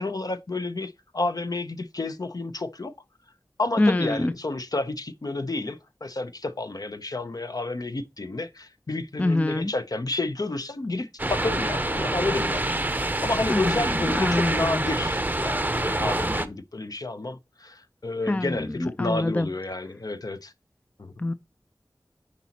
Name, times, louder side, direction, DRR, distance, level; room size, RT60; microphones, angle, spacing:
voice 1, 0.0-2.9 3.6-12.6 13.2-20.5 21.0-21.1, left 2 dB, 55° left, 0.7 m, -30 dB
voice 2, 3.8-4.3 9.2-9.7 13.5-14.8 18.3-19.5 21.2-21.3, left 2 dB, 20° left, 0.4 m, -25 dB
sound 1, 11.2-16.5, right 1 dB, 20° right, 0.6 m, -26 dB
9.8 x 4.1 x 2.9 m
wide cardioid pair, 55°, 7 cm